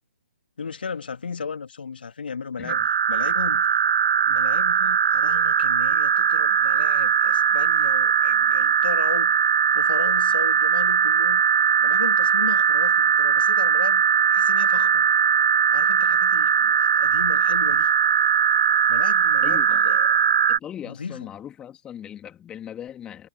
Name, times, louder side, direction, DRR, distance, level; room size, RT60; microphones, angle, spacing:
voice 1, 0.6-2.8 3.1-3.7 4.2-9.4 9.7-11.4 11.8-14.0 14.3-15.1 15.7-17.9 18.9-20.1 20.8-21.3, left 5 dB, 65° left, 2.2 m, -35 dB
sound 1, 2.7-20.6, right 7 dB, 55° right, 0.6 m, -20 dB
voice 2, 19.4-19.9 20.5-23.3, left 10 dB, 15° left, 2.8 m, -39 dB
figure-of-eight pair, 130°, 6 cm